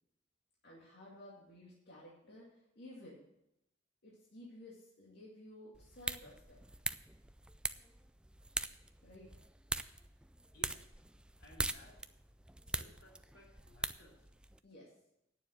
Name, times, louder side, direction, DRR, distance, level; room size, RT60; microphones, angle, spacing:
voice 1, 0.6-3.2 4.0-6.6 9.0-9.3 14.6-14.9, left 1 dB, 55° left, -5 dB, 2.3 m, -54 dB
sound 1, 5.7-14.6, right 2 dB, 5° right, 0.3 m, -43 dB
voice 2, 10.5-10.9 11.4-12.0 12.7-14.3, left 1 dB, 80° left, -2 dB, 3.7 m, -60 dB
9.3 x 7.1 x 7.8 m, 0.82 s
head